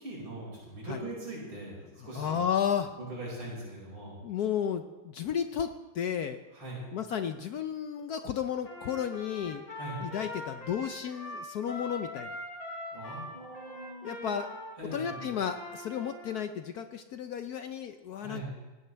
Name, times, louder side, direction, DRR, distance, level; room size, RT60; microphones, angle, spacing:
voice 1, 0.0-2.4 3.0-4.2 6.5-6.8 9.7-10.0 12.9-14.4 14.8-15.4 18.2-18.5, right 2 dB, 75° right, -5 dB, 6.4 m, -41 dB
voice 2, 2.1-2.9 4.2-6.4 6.9-9.6 10.0-12.3 14.0-14.5 14.9-18.5, left 8 dB, 75° left, 8 dB, 0.8 m, -33 dB
Trumpet, 8.6-16.4, left 1 dB, 40° left, 3.5 m, -42 dB
18.5 x 16.5 x 3.4 m, 1.2 s
omnidirectional pair, 2.4 m